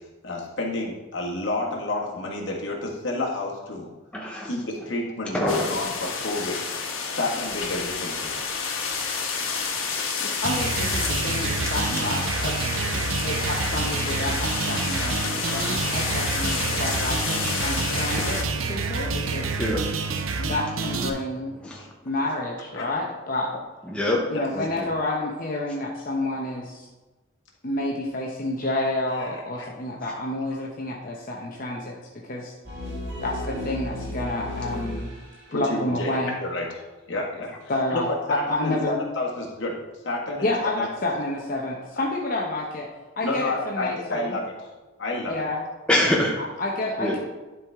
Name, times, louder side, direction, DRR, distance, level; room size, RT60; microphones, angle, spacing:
voice 1, 0.2-3.9 4.5-6.6 7.0-8.4 21.8-21.9 22.7-22.9 24.3-24.4 29.1-29.4 35.5-36.1 36.4-38.0 38.3-39.7 40.0-40.9 41.9-42.0 43.2-44.7 45.0-45.4, left 2 dB, 60° left, -2 dB, 1.6 m, -30 dB
voice 2, 4.1-4.5 5.3-5.7 9.9-10.0 12.9-13.0 18.2-18.3 19.6-19.8 20.1-20.2 21.0-21.2 21.6-21.9 23.9-24.2 24.5-24.9 45.9-46.4 47.0-47.2, left 1 dB, 5° left, -2 dB, 0.8 m, -25 dB
sound 1, 5.5-18.4, left 5 dB, 85° left, 1.3 m, -29 dB
voice 3, 10.2-12.5 13.2-18.4 18.7-19.6 20.4-21.6 22.0-23.5 24.3-26.9 27.6-32.0 32.3-32.5 33.2-35.1 35.5-36.4 37.7-39.0 40.4-42.9 43.2-44.4 45.3-45.6 46.4-47.2, left 2 dB, 45° left, -2 dB, 0.8 m, -29 dB
sound 2, 10.4-21.1, right 4 dB, 90° right, 0.7 m, -28 dB
sound 3, 32.7-35.5, left 1 dB, 55° right, 2.2 m, -33 dB
11.0 x 4.8 x 3.6 m, 1.2 s
head